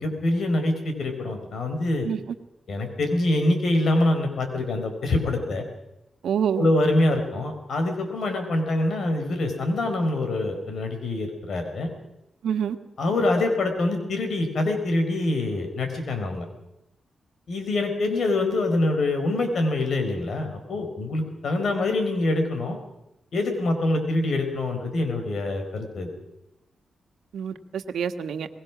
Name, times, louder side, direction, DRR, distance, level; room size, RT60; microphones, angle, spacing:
voice 1, 0.0-2.1 2.7-5.7 6.6-11.9 13.0-16.5 17.5-22.8 23.3-26.1, left 2 dB, 75° left, 6 dB, 5.1 m, -25 dB
voice 2, 6.2-6.7 12.4-12.8 27.3-28.5, right 8 dB, 85° right, 8 dB, 1.5 m, -27 dB
24.0 x 20.0 x 6.2 m, 0.86 s
cardioid pair, 65°, 0 cm